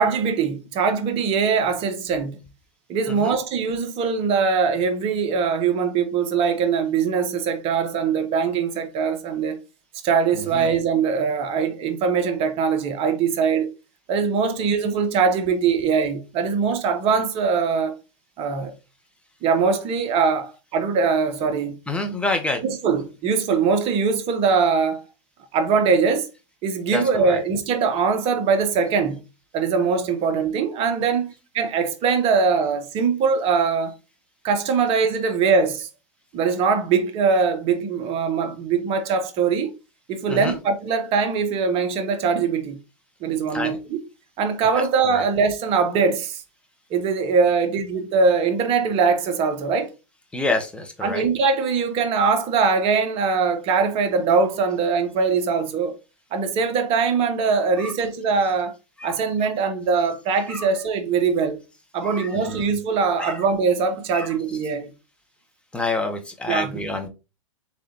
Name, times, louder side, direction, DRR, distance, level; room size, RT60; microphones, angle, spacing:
voice 1, 0.0-2.4 2.9-9.6 10.0-13.7 14.1-17.9 18.4-18.7 19.4-21.8 22.6-25.0 25.5-26.3 26.6-29.2 29.5-33.9 34.4-35.9 36.3-39.7 40.1-42.8 43.2-44.0 44.4-46.4 46.9-49.9 51.0-55.9 56.3-58.7 59.0-61.6 61.9-64.9 66.5-66.8, right 5 dB, 35° right, 0.7 m, -22 dB
voice 2, 3.1-3.4 10.3-10.7 21.9-22.6 26.9-27.4 40.3-40.6 43.5-43.8 44.7-45.2 50.3-51.2 57.8-57.9 59.0-59.2 60.5-60.9 62.0-62.6 63.2-63.4 64.1-64.6 65.7-67.1, left 2 dB, 5° left, 0.7 m, -28 dB
3.5 x 3.2 x 2.7 m
hypercardioid pair, 110°, 17 cm